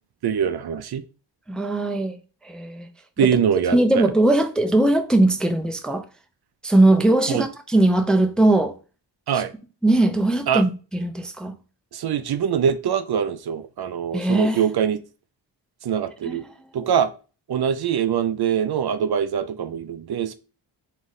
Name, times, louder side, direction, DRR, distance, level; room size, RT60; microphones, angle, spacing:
voice 1, 0.2-1.0 3.2-4.1 7.3-7.4 9.3-9.5 10.5-10.6 11.9-15.0 15.8-16.4 16.7-17.1 17.5-20.3, right 8 dB, 55° right, 0.5 m, -23 dB
voice 2, 1.5-2.2 2.4-2.9 3.2-3.4 3.7-6.0 6.6-8.8 9.3-9.4 9.8-11.6 14.1-14.6 16.3-16.5, right 2 dB, ahead, 0.4 m, -20 dB
4.0 x 3.1 x 3.7 m
cardioid pair, 75°, 45 cm